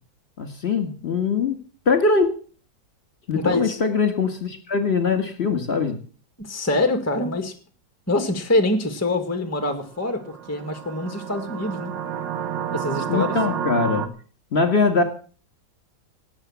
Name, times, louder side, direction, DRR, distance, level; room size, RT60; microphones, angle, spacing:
voice 1, 0.4-1.6 1.9-2.3 3.3-6.0 13.1-14.1 14.5-15.0, left 4 dB, 35° left, 7 dB, 2.2 m, -22 dB
voice 2, 3.3-3.8 6.4-7.5 8.1-11.9 12.7-13.4, left 2 dB, 10° left, 7 dB, 1.6 m, -25 dB
sound 1, 10.1-14.1, right 8 dB, 70° right, 1.8 m, -30 dB
18.5 x 8.0 x 7.2 m, 0.40 s
omnidirectional pair, 2.0 m